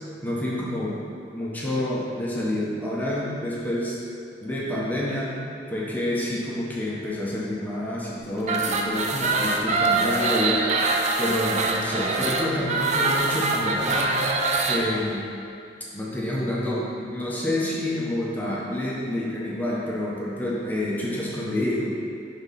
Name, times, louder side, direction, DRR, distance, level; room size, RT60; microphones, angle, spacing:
voice 1, 0.2-1.0 1.3-4.0 4.4-5.3 5.7-10.8 11.2-14.2 14.6-15.2 15.9-21.9, left 1 dB, 10° left, -6 dB, 0.8 m, -28 dB
sound 1, 8.4-14.8, right 3 dB, 40° right, 0.5 m, -24 dB
6.1 x 3.6 x 5.4 m, 2.5 s
head